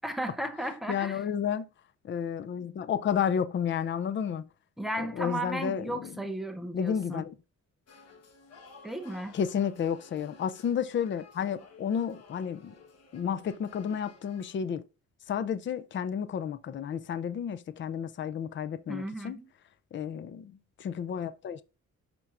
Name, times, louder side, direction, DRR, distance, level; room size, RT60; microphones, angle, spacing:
voice 1, 0.0-1.2 4.8-7.2 8.8-9.4 18.9-19.5, right 1 dB, ahead, 0.6 m, -35 dB
voice 2, 0.9-1.6 2.0-4.5 5.0-6.2 6.7-7.3 9.3-12.7 13.1-14.8 15.3-19.4 19.9-21.6, left 8 dB, 40° left, 0.4 m, -31 dB
sound 1, 7.9-14.6, left 4 dB, 55° left, 1.3 m, -55 dB
11.0 x 4.5 x 2.5 m
wide cardioid pair, 175°, 30 cm